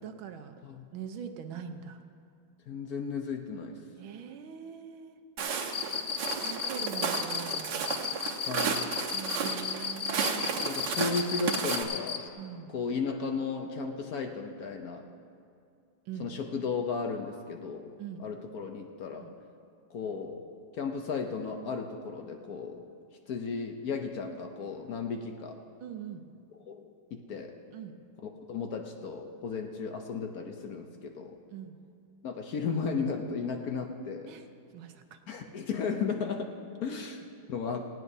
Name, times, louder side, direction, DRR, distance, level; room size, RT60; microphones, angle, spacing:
voice 1, 0.0-0.5 0.9-2.0 4.0-5.2 6.3-8.1 9.1-10.5 12.4-12.8 16.1-16.3 18.0-18.2 19.2-19.3 25.8-26.2 27.7-27.9 31.5-31.8 34.3-34.5 34.7-35.2, right 8 dB, 90° right, 7 dB, 1.6 m, -42 dB
voice 2, 2.7-3.8 8.5-8.9 10.6-12.2 12.7-15.1 16.2-17.9 18.2-19.3 19.9-20.4 20.7-22.8 23.3-25.6 26.7-27.6 28.2-31.4 32.2-34.3 35.3-37.9, left 5 dB, 60° left, 4 dB, 1.0 m, -35 dB
Walk footsteps, 5.4-11.8, right 5 dB, 65° right, 1.6 m, -33 dB
Cricket, 5.7-12.2, left 7 dB, 75° left, 0.7 m, -34 dB
18.5 x 16.5 x 2.7 m, 2.4 s
omnidirectional pair, 2.1 m